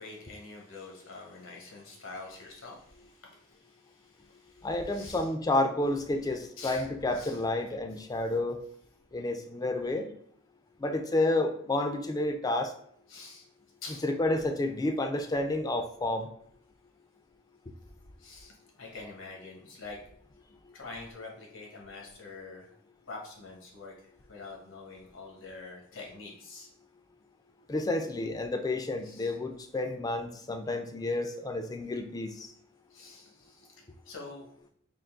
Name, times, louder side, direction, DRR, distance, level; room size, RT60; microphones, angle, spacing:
voice 1, 0.0-5.3 6.6-6.9 7.1-7.4 13.1-13.5 13.8-14.1 18.2-20.0 20.7-22.7 23.1-26.7 29.0-29.3 32.9-34.5, left 3 dB, 85° left, -1 dB, 1.1 m, -46 dB
voice 2, 4.6-8.6 9.1-10.1 10.8-12.7 14.0-16.3 27.7-32.5, left 2 dB, 20° left, 6 dB, 0.3 m, -30 dB
3.8 x 2.5 x 3.5 m, 0.65 s
head